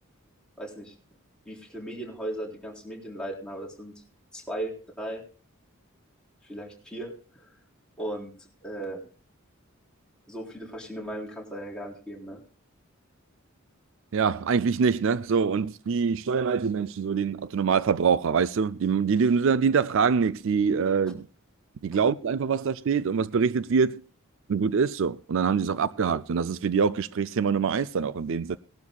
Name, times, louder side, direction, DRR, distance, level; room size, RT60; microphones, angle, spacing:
voice 1, 0.6-0.9 1.5-3.9 4.3-5.2 6.4-7.5 8.0-9.0 10.3-12.4, right 1 dB, 5° left, 3.8 m, -37 dB
voice 2, 14.1-21.3 21.8-24.0 24.5-28.6, right 6 dB, 65° right, 0.4 m, -24 dB
19.0 x 12.0 x 2.3 m
head